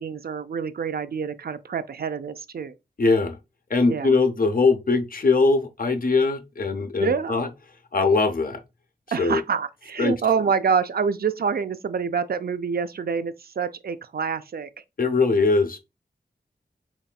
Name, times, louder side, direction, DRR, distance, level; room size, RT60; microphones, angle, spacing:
voice 1, 0.0-2.7 3.9-4.2 7.0-7.4 9.1-14.7, right 6 dB, 65° right, 0.4 m, -26 dB
voice 2, 3.0-3.4 3.7-7.5 7.9-8.6 9.2-9.4 10.0-10.1 15.0-15.8, left 3 dB, 55° left, 0.7 m, -21 dB
4.1 x 3.2 x 2.3 m
cardioid pair, 50°, 17 cm